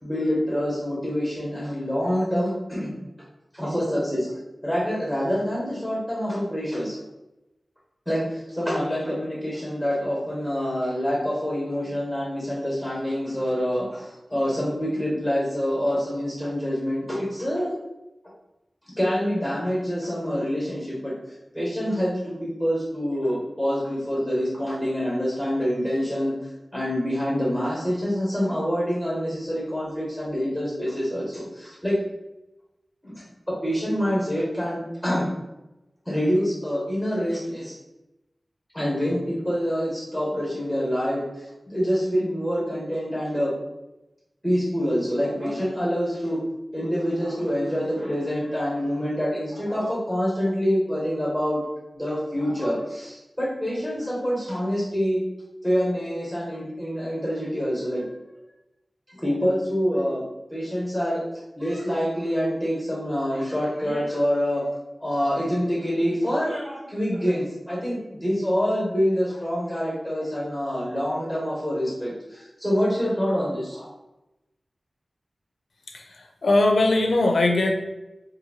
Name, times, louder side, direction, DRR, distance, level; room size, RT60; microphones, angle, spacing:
voice 1, 0.0-2.9 3.5-4.3 4.6-7.0 8.1-17.7 19.0-21.1 21.5-26.3 26.7-32.0 33.0-33.2 33.6-35.3 36.1-37.7 38.7-43.5 44.4-46.4 46.7-51.6 51.9-55.2 55.6-58.1 59.1-60.2 60.5-61.2 61.6-64.6 65.0-73.9, equal, ahead, -5 dB, 1.0 m, -26 dB
voice 2, 75.9-77.7, left 2 dB, 80° left, 2 dB, 0.4 m, -20 dB
2.7 x 2.6 x 2.7 m, 0.95 s
wide cardioid pair, 70°, 0 cm